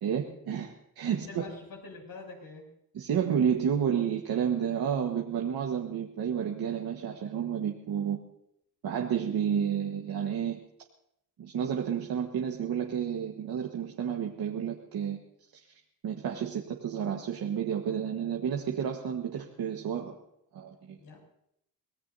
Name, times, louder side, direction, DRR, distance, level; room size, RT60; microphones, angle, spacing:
voice 1, 0.0-1.4 2.9-8.2 8.8-10.6 11.4-15.2 16.0-20.1 20.5-21.0, right 8 dB, 75° right, 1 dB, 1.5 m, -31 dB
voice 2, 1.0-2.7 21.0-21.2, left 3 dB, 75° left, 0 dB, 7.2 m, -45 dB
25.5 x 18.0 x 2.8 m, 0.76 s
cardioid pair, 80°, 37 cm